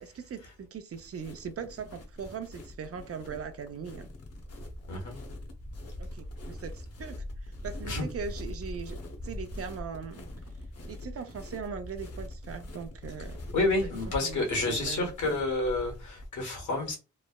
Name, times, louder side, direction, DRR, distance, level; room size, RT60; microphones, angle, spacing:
voice 1, 0.0-4.1 6.0-10.2 10.9-13.4 14.2-15.1, right 6 dB, 55° right, 0.5 m, -40 dB
sound 1, 0.9-16.3, left 1 dB, 55° left, 0.7 m, -42 dB
voice 2, 13.5-17.0, left 2 dB, 85° left, 1.1 m, -29 dB
3.1 x 2.0 x 2.2 m
wide cardioid pair, 100°, 29 cm